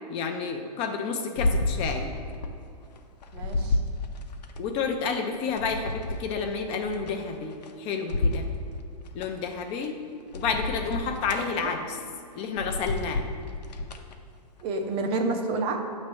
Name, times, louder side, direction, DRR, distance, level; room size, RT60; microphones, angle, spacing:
voice 1, 0.1-2.1 4.6-8.4 9.1-10.0 10.3-12.0 12.4-13.3, left 5 dB, 30° left, 4 dB, 0.5 m, -30 dB
sound 1, 1.4-2.6 2.9-4.6 5.1-7.7 8.1-9.3 9.8-9.9 10.3-11.4 11.9-12.1 12.5-14.1 14.6-14.7, left 2 dB, 85° left, 0.7 m, -30 dB
voice 2, 3.3-3.8 10.7-10.9 11.6-11.7 14.6-15.8, right 3 dB, 25° right, 4 dB, 0.6 m, -29 dB
7.4 x 3.2 x 6.1 m, 2.4 s
hypercardioid pair, 135°, 21 cm